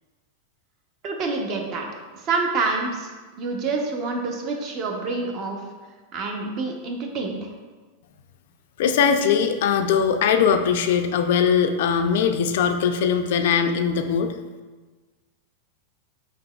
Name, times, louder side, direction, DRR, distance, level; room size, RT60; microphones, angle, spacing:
voice 1, 1.0-1.9 2.1-3.1 3.4-5.6 6.1-7.5, right 3 dB, 35° right, 2 dB, 0.7 m, -27 dB
voice 2, 8.8-14.3, left 7 dB, 65° left, 7 dB, 0.3 m, -20 dB
5.2 x 3.9 x 2.3 m, 1.3 s
supercardioid pair, 150°, 0 cm